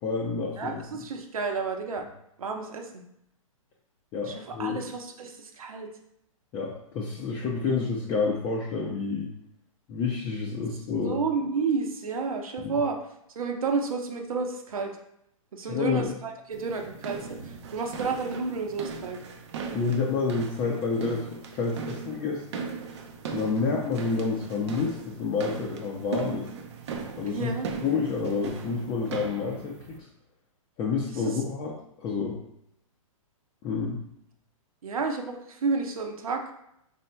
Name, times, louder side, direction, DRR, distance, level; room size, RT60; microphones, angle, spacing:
voice 1, 0.0-0.8 4.1-4.8 6.5-9.3 9.9-11.2 12.6-12.7 15.7-16.1 19.7-22.7 23.3-26.5 27.2-27.5 27.8-30.1 30.8-32.4 33.6-34.0, left 4 dB, 25° left, -3 dB, 0.6 m, -29 dB
voice 2, 0.6-2.0 2.4-3.0 4.2-5.9 11.0-13.0 13.3-15.0 15.5-19.2 27.2-27.7 31.2-31.4 34.8-36.4, right 4 dB, 80° right, 3 dB, 0.9 m, -31 dB
sound 1, 16.5-30.0, right 5 dB, 55° right, 0.7 m, -39 dB
5.3 x 4.1 x 2.2 m, 0.77 s
hypercardioid pair, 140°, 18 cm